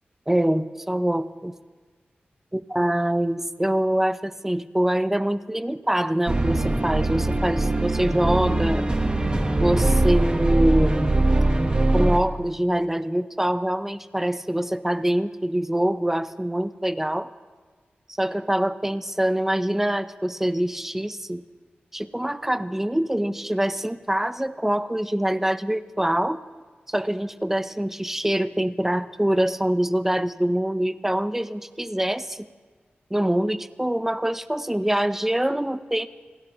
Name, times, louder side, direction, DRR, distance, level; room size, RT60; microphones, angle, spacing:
voice 1, 0.3-1.5 2.5-8.9 9.6-11.3 11.9-17.3 18.1-21.4 21.9-26.4 26.9-32.5 33.1-36.1, right 1 dB, 10° right, 12 dB, 0.6 m, -24 dB
sound 1, 6.3-12.2, right 2 dB, 25° right, 1.2 m, -22 dB
27.5 x 16.5 x 3.0 m, 1.4 s
wide cardioid pair, 75°, 4 cm